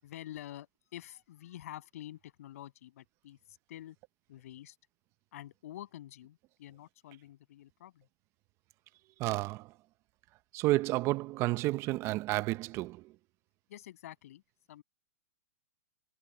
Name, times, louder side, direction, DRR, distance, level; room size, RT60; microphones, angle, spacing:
voice 1, 0.0-4.0 4.3-4.8 5.3-8.1 13.7-14.4 14.7-14.8, left 13 dB, 65° left, 7.7 m, -48 dB
voice 2, 9.2-9.7 10.5-13.1, right 18 dB, 30° right, 0.6 m, -31 dB
hypercardioid pair, 140°, 9 cm